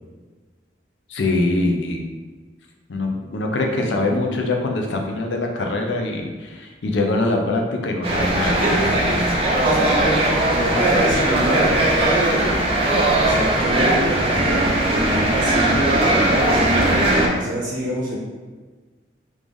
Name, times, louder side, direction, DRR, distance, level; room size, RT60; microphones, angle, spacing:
voice 1, 1.1-2.1 2.9-9.8, left 2 dB, 80° left, 2 dB, 0.5 m, -24 dB
sound 1, 8.0-17.3, right 1 dB, 30° right, 0.5 m, -19 dB
voice 2, 10.5-12.6 13.2-16.8 17.3-18.2, right 1 dB, 85° right, -6 dB, 1.0 m, -26 dB
3.1 x 2.6 x 3.6 m, 1.4 s
head